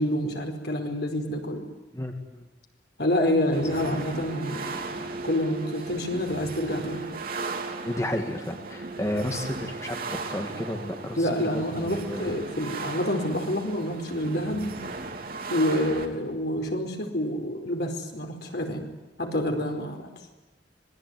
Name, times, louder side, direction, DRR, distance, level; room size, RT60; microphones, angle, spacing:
voice 1, 0.0-1.6 3.0-7.1 11.2-14.8 15.5-18.9 19.2-20.1, left 1 dB, 65° left, 4 dB, 4.8 m, -28 dB
voice 2, 1.9-2.5 7.8-12.3 19.5-19.6, left 1 dB, 15° left, 3 dB, 2.3 m, -32 dB
sound 1, 3.5-16.1, right 3 dB, 55° right, 3.4 m, -36 dB
26.0 x 20.5 x 9.7 m, 1.1 s
head